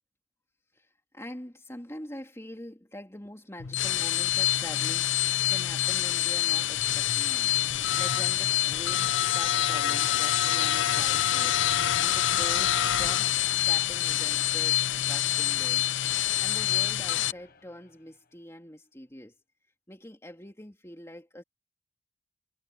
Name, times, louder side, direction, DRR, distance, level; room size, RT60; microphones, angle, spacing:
voice 1, 0.7-15.9 16.4-19.3 19.9-21.4, left 1 dB, 15° left, 3.2 m, -44 dB
sound 1, 3.6-17.3, left 12 dB, 70° left, 0.6 m, -26 dB
sound 2, 5.5-18.3, left 3 dB, 50° left, 1.4 m, -51 dB
head